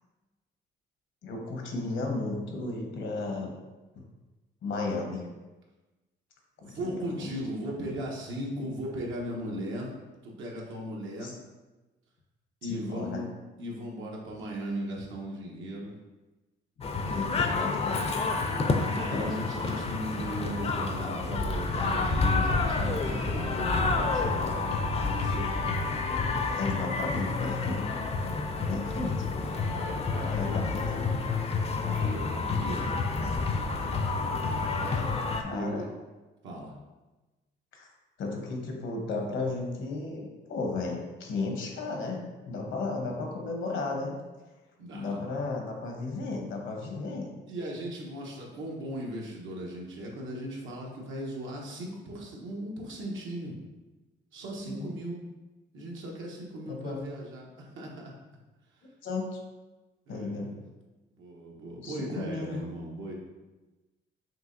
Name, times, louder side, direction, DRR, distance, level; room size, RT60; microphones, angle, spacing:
voice 1, 1.2-3.5 3.9-4.0 4.6-5.3 6.6-7.3 11.2-11.4 12.7-13.2 17.1-18.0 18.9-19.3 26.6-27.8 28.7-29.3 30.3-31.1 35.4-35.8 37.7-37.9 38.2-44.2 44.9-47.3 54.7-54.9 56.7-57.0 59.0-59.4 60.1-60.5 61.8-62.7, left 3 dB, 75° left, 1 dB, 1.0 m, -34 dB
voice 2, 6.6-9.9 10.2-11.3 12.6-13.3 13.6-15.9 18.9-25.5 29.6-31.1 31.8-32.9 34.8-35.1 35.5-35.9 36.4-36.7 44.8-45.2 47.5-53.5 54.3-55.2 55.7-58.1 60.1-60.6 61.1-63.1, right 1 dB, 80° right, -2 dB, 1.0 m, -37 dB
sound 1, 16.8-35.4, left 3 dB, 30° left, 0.5 m, -29 dB
5.7 x 2.8 x 2.6 m, 1.2 s
cardioid pair, 90°, 20 cm